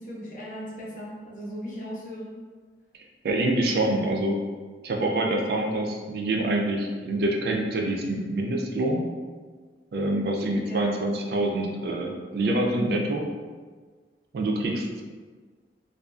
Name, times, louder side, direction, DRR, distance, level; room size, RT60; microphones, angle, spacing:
voice 1, 0.0-2.3 10.6-11.0, equal, 50° left, -5 dB, 0.6 m, -38 dB
voice 2, 3.2-4.4 4.8-9.0 9.9-13.2 14.3-15.0, right 1 dB, 60° right, 1 dB, 0.3 m, -26 dB
2.4 x 2.2 x 2.3 m, 1.5 s
head